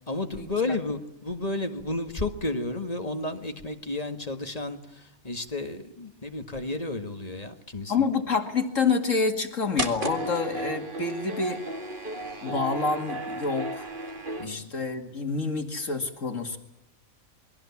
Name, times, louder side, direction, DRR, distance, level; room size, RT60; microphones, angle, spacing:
voice 1, 0.1-8.1 14.4-14.7, left 2 dB, 30° left, 6 dB, 1.9 m, -32 dB
voice 2, 7.9-11.6 12.4-13.9 14.4-16.6, left 4 dB, 65° left, 5 dB, 2.7 m, -27 dB
sound 1, 9.8-14.5, right 1 dB, 40° right, 2.4 m, -34 dB
29.0 x 22.5 x 7.3 m, 0.84 s
omnidirectional pair, 1.4 m